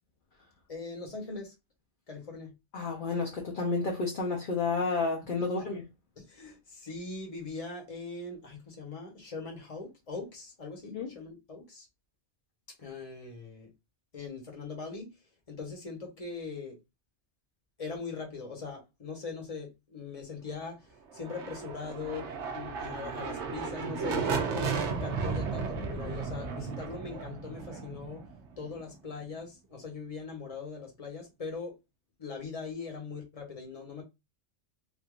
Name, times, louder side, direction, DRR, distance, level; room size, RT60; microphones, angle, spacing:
voice 1, 0.7-1.5 2.1-2.5 5.5-5.7 6.2-11.9 12.8-13.7 14.1-15.1 15.5-16.8 17.8-28.3 28.6-31.7 32.2-34.0, left 4 dB, 30° left, 1.1 m, -41 dB
voice 2, 2.7-5.8 10.9-11.1, left 3 dB, 50° left, 0.8 m, -31 dB
sound 1, 21.1-28.9, right 5 dB, 70° right, 1.0 m, -34 dB
3.5 x 2.6 x 2.4 m
omnidirectional pair, 1.3 m